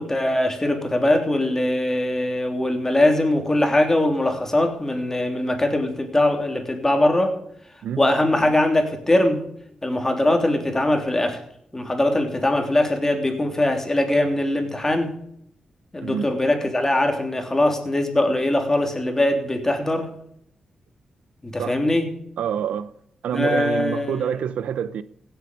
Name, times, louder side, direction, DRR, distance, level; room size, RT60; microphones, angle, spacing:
voice 1, 0.0-7.4 8.0-9.4 9.8-11.4 11.7-15.1 15.9-20.1 21.4-22.1 23.3-24.3, left 1 dB, 20° left, 3.3 m, -21 dB
voice 2, 22.4-22.9 23.2-25.0, right 9 dB, 85° right, 0.7 m, -27 dB
16.5 x 8.1 x 5.4 m
cardioid pair, 60°, 2 cm